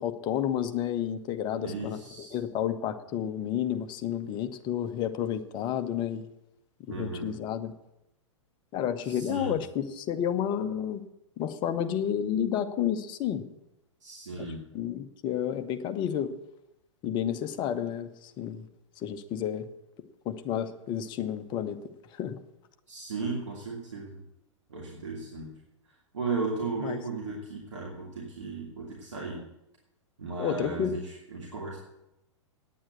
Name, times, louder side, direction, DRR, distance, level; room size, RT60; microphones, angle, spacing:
voice 1, 0.0-6.2 6.9-7.7 8.7-11.0 11.4-13.4 14.4-14.5 14.7-16.3 17.0-18.7 19.0-19.7 20.2-21.8 22.1-22.4 26.8-27.0 30.4-30.9, left 9 dB, 30° left, 9 dB, 0.9 m, -31 dB
voice 2, 1.6-2.3 6.9-7.3 9.0-9.6 14.0-14.6 22.9-24.2 24.7-25.5 26.1-29.4 30.2-31.8, right 4 dB, 70° right, -3 dB, 2.7 m, -35 dB
9.3 x 8.8 x 8.3 m, 0.88 s
figure-of-eight pair, 105°, 16 cm